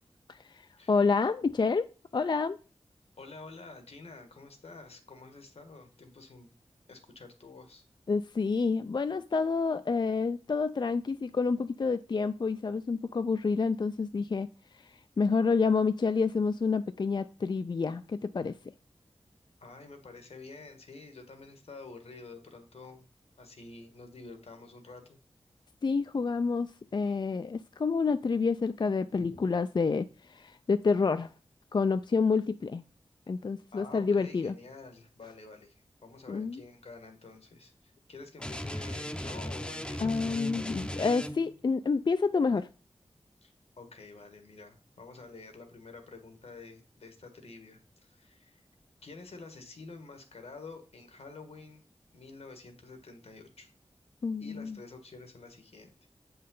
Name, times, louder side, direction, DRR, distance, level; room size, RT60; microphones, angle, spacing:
voice 1, 0.3-1.8 2.1-2.6 8.1-14.5 14.7-18.5 25.8-31.3 31.7-32.8 33.3-34.5 36.3-36.6 40.0-42.7 54.2-54.8, left 4 dB, 45° left, 0.4 m, -28 dB
voice 2, 3.2-6.5 6.9-7.8 19.6-23.1 23.4-25.2 29.2-29.4 33.7-35.7 36.0-40.4 43.4-48.6 49.0-51.8 52.1-53.7 54.4-56.1, left 3 dB, 80° left, 1.5 m, -49 dB
sound 1, 38.4-41.6, equal, 10° left, 0.7 m, -37 dB
7.5 x 5.6 x 3.8 m
cardioid pair, 45°, 10 cm